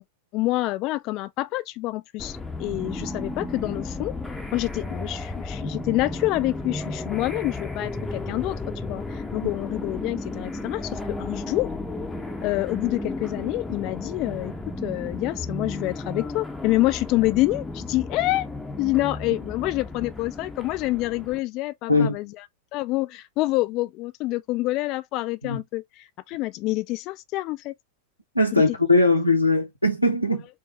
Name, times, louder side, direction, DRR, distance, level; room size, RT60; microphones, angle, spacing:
voice 1, 0.3-4.1 4.5-11.7 12.4-14.5 14.8-18.5 18.8-22.3 22.7-27.7 28.5-28.6, left 19 dB, 40° left, 0.4 m, -27 dB
sound 1, 2.2-21.4, left 2 dB, 5° left, 0.7 m, -34 dB
voice 2, 28.3-30.5, left 2 dB, 90° left, 1.0 m, -20 dB
4.8 x 2.2 x 2.9 m
figure-of-eight pair, 90°, 0 cm